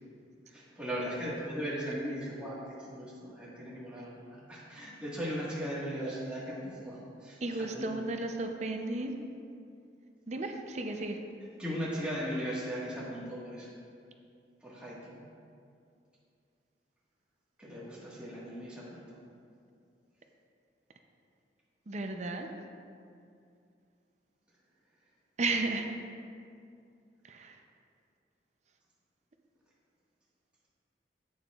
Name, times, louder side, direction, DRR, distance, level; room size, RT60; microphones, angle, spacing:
voice 1, 0.5-2.6 2.9-7.8 11.6-13.7 14.6-15.2 17.6-19.0, equal, 5° right, -8 dB, 1.5 m, -38 dB
voice 2, 7.4-9.1 10.3-11.2 21.9-22.5 25.4-25.9 27.2-27.6, right 2 dB, 40° right, 4 dB, 0.5 m, -34 dB
10.5 x 8.6 x 2.4 m, 2.4 s
head